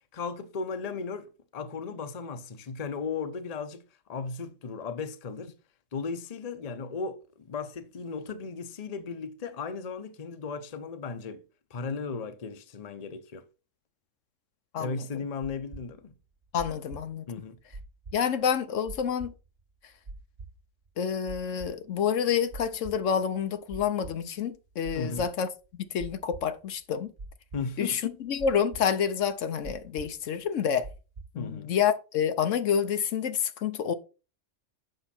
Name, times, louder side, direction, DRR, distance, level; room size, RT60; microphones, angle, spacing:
voice 1, 0.1-3.8 4.1-5.5 5.9-11.4 11.7-13.5 14.8-16.1 17.3-17.6 24.9-25.3 27.5-28.2 31.3-31.7, left 5 dB, 35° left, 0.8 m, -36 dB
sound 1, 15.4-31.5, right 3 dB, 40° right, 1.0 m, -44 dB
voice 2, 16.5-17.2 18.1-19.3 21.0-25.5 25.8-27.1 27.8-30.9 31.3-33.9, left 7 dB, 75° left, 1.1 m, -28 dB
7.8 x 5.6 x 4.3 m
omnidirectional pair, 1.3 m